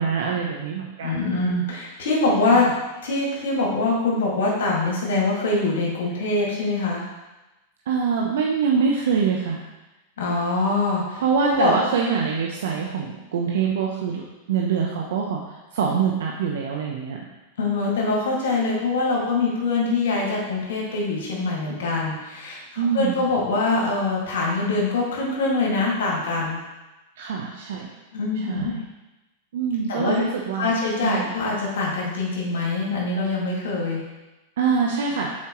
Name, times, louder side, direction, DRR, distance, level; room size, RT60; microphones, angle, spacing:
voice 1, 0.0-1.3 2.4-2.7 7.9-9.6 11.2-17.2 22.8-23.2 27.2-27.9 28.4-28.8 29.5-30.7 31.0-31.3 34.6-35.3, right 6 dB, 75° right, -1 dB, 0.7 m, -24 dB
voice 2, 1.0-2.7 3.0-7.0 10.2-11.7 17.6-26.6 28.1-28.7 29.9-30.2 30.5-34.0, left 3 dB, 75° left, -3 dB, 2.0 m, -24 dB
7.3 x 4.4 x 3.0 m, 1.0 s
hypercardioid pair, 115°, 0 cm